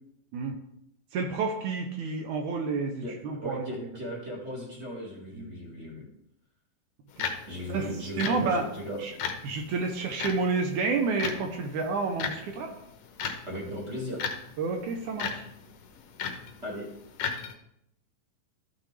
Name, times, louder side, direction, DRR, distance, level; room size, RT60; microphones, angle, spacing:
voice 1, 1.1-3.9 5.3-5.7 7.2-7.3 7.7-8.7 9.0-9.1 9.4-12.7 14.6-15.5, right 4 dB, 75° right, 4 dB, 2.0 m, -30 dB
voice 2, 3.0-6.0 7.5-9.0 13.4-14.2 16.6-16.9, equal, 25° right, -3 dB, 1.5 m, -37 dB
sound 1, 7.1-17.5, left 6 dB, 75° left, 1.5 m, -38 dB
13.5 x 6.2 x 3.3 m, 0.78 s
omnidirectional pair, 4.0 m